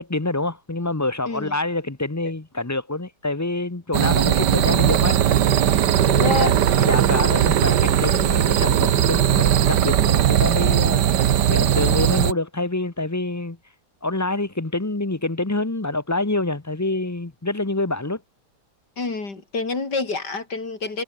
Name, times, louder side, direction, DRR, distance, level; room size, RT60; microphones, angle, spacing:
voice 1, 0.0-5.2 6.3-11.0 11.5-13.6 14.0-18.2, left 2 dB, 15° left, 0.9 m, -26 dB
sound 1, 3.9-12.3, right 10 dB, 75° right, 1.7 m, -18 dB
voice 2, 6.1-6.6 19.0-21.0, left 3 dB, 70° left, 5.0 m, -27 dB
omnidirectional pair, 1.9 m